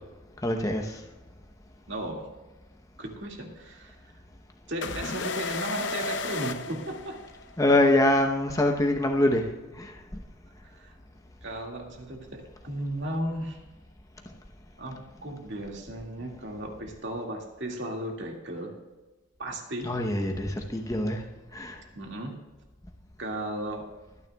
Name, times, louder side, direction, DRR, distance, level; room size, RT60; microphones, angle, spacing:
voice 1, 0.4-1.0 7.6-10.2 14.3-14.4 19.8-21.2 21.5-21.8, left 1 dB, 15° left, 2 dB, 0.9 m, -25 dB
voice 2, 1.9-2.3 3.0-4.0 4.7-7.2 10.6-11.0 11.4-13.6 14.8-18.7 19.4-19.9 21.9-22.4 23.2-23.9, right 1 dB, 55° right, 1 dB, 2.1 m, -35 dB
sound 1, 4.8-7.6, left 4 dB, 60° left, 0.7 m, -34 dB
24.0 x 9.8 x 2.3 m, 1.2 s
head